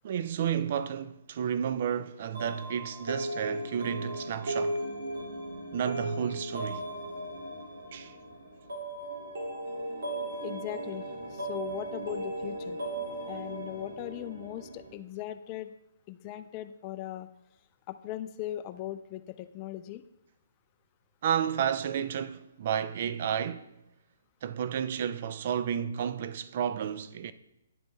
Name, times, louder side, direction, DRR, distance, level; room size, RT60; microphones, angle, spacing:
voice 1, 0.0-4.8 5.7-6.9 7.9-8.2 21.2-23.7 24.4-27.3, right 8 dB, 50° right, 0.3 m, -31 dB
sound 1, 2.3-14.9, right 1 dB, 70° right, 2.2 m, -37 dB
voice 2, 10.4-11.0 11.3-12.8 13.3-15.7 16.1-17.3 17.9-20.0, left 13 dB, 30° left, 0.3 m, -39 dB
10.5 x 5.1 x 2.3 m
hypercardioid pair, 135°, 0 cm